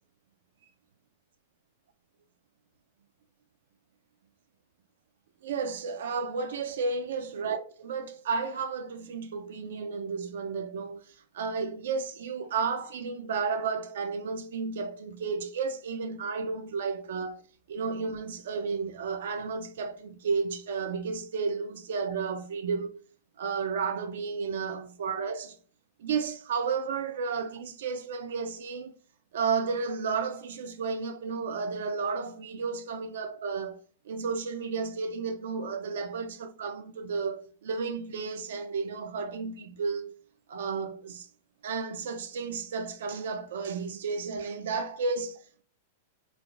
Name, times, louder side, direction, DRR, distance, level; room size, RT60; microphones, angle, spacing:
voice 1, 5.4-11.0 11.3-17.4 17.7-23.0 23.4-25.6 26.0-28.9 29.3-33.8 34.1-40.1 40.5-41.3 41.6-45.6, right 5 dB, 80° right, 0.3 m, -32 dB
3.2 x 2.5 x 2.3 m
supercardioid pair, 155°, 0 cm